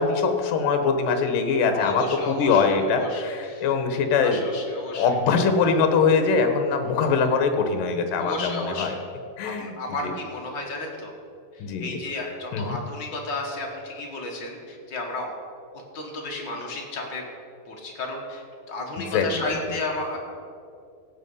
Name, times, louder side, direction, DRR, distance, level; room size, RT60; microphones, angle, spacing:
voice 1, 0.0-4.4 4.9-9.0 9.4-9.8 10.0-10.1 11.6-11.9 12.5-12.8 19.0-19.5, left 5 dB, 70° left, 7 dB, 2.6 m, -22 dB
voice 2, 1.7-3.6 4.2-5.0 8.2-9.0 9.4-11.1 11.8-15.4 15.7-17.2 17.7-20.2, left 2 dB, 45° left, -1 dB, 1.5 m, -33 dB
16.5 x 7.5 x 5.5 m, 2.4 s
omnidirectional pair, 4.1 m